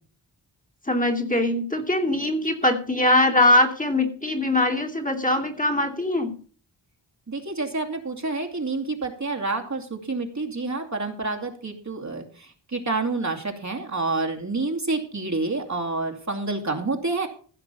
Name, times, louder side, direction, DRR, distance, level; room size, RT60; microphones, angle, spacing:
voice 1, 0.9-6.3, left 1 dB, 20° left, 2 dB, 2.7 m, -22 dB
voice 2, 7.3-17.3, right 3 dB, 40° right, 2 dB, 2.7 m, -28 dB
15.5 x 6.0 x 6.9 m, 0.42 s
cardioid pair, 70°, 43 cm